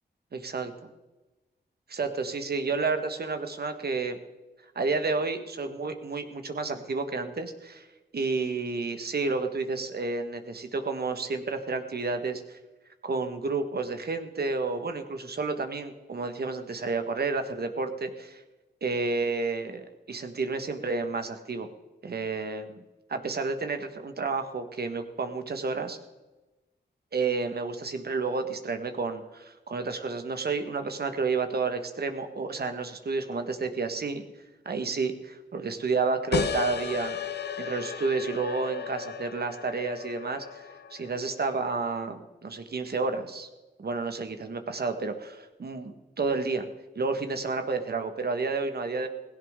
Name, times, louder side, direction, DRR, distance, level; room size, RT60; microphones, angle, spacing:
voice 1, 0.3-0.9 1.9-4.2 4.7-7.9 8.1-12.6 13.0-18.4 18.8-21.7 22.0-22.8 23.1-26.0 27.1-34.2 34.6-37.2 37.6-40.6 40.9-43.5 43.8-46.7 46.9-49.1, right 4 dB, 60° right, 7 dB, 1.5 m, -30 dB
sound 1, 36.3-41.5, left 7 dB, 65° left, 0.7 m, -35 dB
17.0 x 16.5 x 3.8 m, 1.1 s
wide cardioid pair, 85°, 18 cm